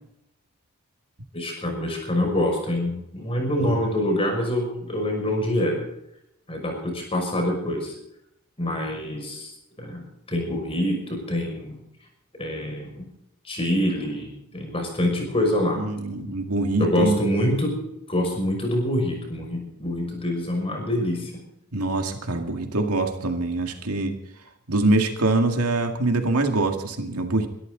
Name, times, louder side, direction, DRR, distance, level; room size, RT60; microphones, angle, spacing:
voice 1, 1.3-5.8 6.5-7.9 8.6-9.5 9.8-10.0 10.3-11.8 12.4-13.0 13.4-15.8 16.8-17.7 18.1-21.3, left 1 dB, 25° left, 2 dB, 6.0 m, -25 dB
voice 2, 15.6-17.2 21.7-24.2 24.7-27.5, right 2 dB, 85° right, 5 dB, 2.1 m, -24 dB
23.5 x 13.0 x 4.0 m, 0.81 s
head